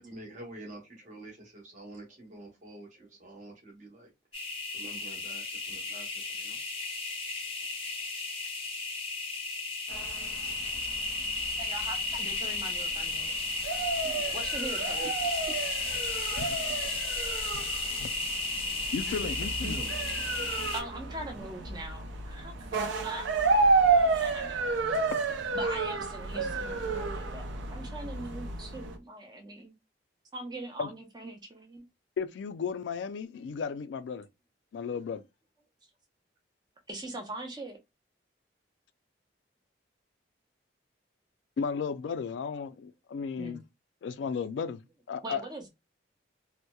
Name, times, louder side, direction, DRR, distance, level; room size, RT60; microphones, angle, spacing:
voice 1, 0.1-4.1 4.7-6.6 13.9-14.2 19.1-19.3 19.6-19.9, right 1 dB, 40° right, 0.9 m, -46 dB
sound 1, 4.3-20.8, left 3 dB, 30° left, 0.5 m, -34 dB
sound 2, 9.9-29.0, right 3 dB, 85° right, 0.5 m, -31 dB
voice 2, 11.6-13.3 14.3-15.1 20.7-23.3 24.1-24.6 25.5-29.7 30.3-31.9 36.9-37.8 43.4-43.6 45.2-45.7, right 2 dB, 20° right, 0.5 m, -41 dB
voice 3, 16.4-17.0 17.5-17.6 18.0-18.1 18.9-19.8 30.8-30.9 32.2-34.3 34.7-35.2 41.6-43.6 44.0-44.8 45.1-45.4, left 6 dB, 80° left, 0.3 m, -34 dB
2.7 x 2.1 x 2.2 m
head